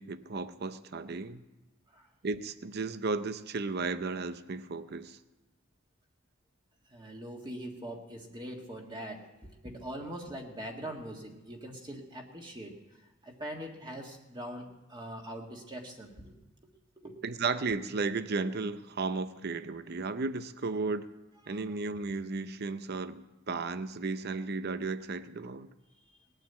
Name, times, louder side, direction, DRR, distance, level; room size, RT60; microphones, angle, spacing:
voice 1, 0.0-1.4 2.2-5.2 17.2-21.1 21.5-25.7, right 4 dB, 50° right, 0.6 m, -34 dB
voice 2, 6.8-16.3 17.0-17.2 21.5-21.6, right 1 dB, 20° right, 1.8 m, -42 dB
19.5 x 9.0 x 8.1 m
head